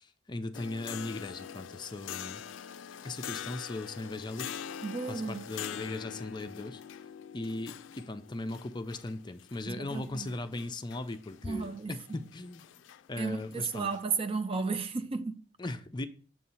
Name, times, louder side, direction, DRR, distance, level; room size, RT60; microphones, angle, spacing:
voice 1, 0.0-2.4 3.0-6.8 7.3-12.6 13.1-13.9 15.6-16.1, left 2 dB, 25° left, 0.5 m, -38 dB
sound 1, 0.5-14.0, left 9 dB, 85° left, 0.4 m, -44 dB
voice 2, 4.8-5.5 9.7-10.3 11.4-11.9 13.2-15.4, right 4 dB, 30° right, 0.4 m, -33 dB
7.5 x 2.8 x 5.6 m
head